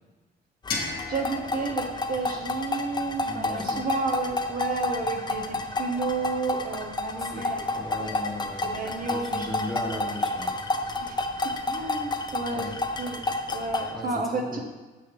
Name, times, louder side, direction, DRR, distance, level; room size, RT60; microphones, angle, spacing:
sound 1, 0.7-3.5, left 4 dB, 55° left, 1.2 m, -37 dB
sound 2, 0.7-13.9, left 2 dB, 25° left, 0.6 m, -30 dB
voice 1, 1.1-7.6 8.0-8.1 8.6-9.5 11.0-11.2 11.7-12.7 13.0-14.6, right 3 dB, 50° right, 3 dB, 0.7 m, -31 dB
voice 2, 3.2-3.8 7.2-7.5 7.7-10.9 12.5-12.7 13.9-14.6, left 1 dB, ahead, -1 dB, 1.2 m, -37 dB
7.1 x 2.8 x 5.2 m, 1.2 s
cardioid pair, 80°, 18 cm